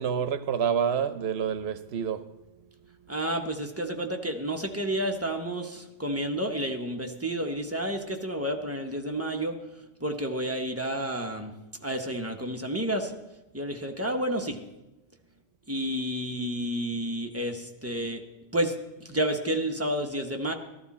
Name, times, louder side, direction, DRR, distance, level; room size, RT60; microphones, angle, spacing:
voice 1, 0.0-2.2, right 7 dB, 75° right, 12 dB, 1.0 m, -27 dB
voice 2, 3.1-9.6 10.0-11.5 11.8-13.1 13.5-14.6 15.7-18.3 18.5-18.7 19.0-20.5, right 1 dB, 15° right, 3 dB, 1.0 m, -30 dB
13.5 x 12.5 x 4.2 m, 0.98 s
omnidirectional pair, 1.1 m